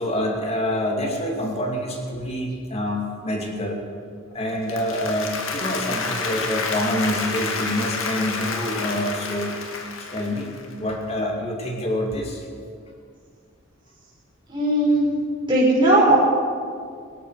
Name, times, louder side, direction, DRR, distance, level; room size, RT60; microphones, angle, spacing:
voice 1, 0.0-3.8 4.3-9.5 10.0-12.4, left 1 dB, 30° left, 0 dB, 2.5 m, -26 dB
Applause, 4.5-10.7, left 4 dB, 80° left, 2.1 m, -29 dB
voice 2, 14.5-15.2 15.5-16.1, right 1 dB, 25° right, -6 dB, 5.5 m, -18 dB
23.0 x 12.5 x 4.9 m, 2.2 s
head